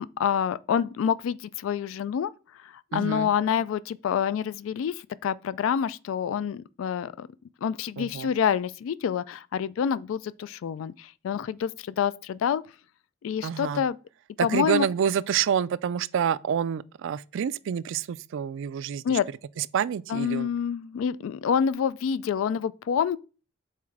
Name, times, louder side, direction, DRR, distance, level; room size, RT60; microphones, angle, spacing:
voice 1, 0.0-2.3 2.6-7.3 7.6-12.6 13.2-14.0 14.4-14.9 19.0-19.3 20.1-23.2, left 8 dB, 70° left, 0.3 m, -27 dB
voice 2, 2.9-3.3 8.0-8.3 13.4-13.8 14.4-19.2 19.6-20.5, right 8 dB, 65° right, 0.3 m, -28 dB
5.7 x 4.3 x 4.7 m
head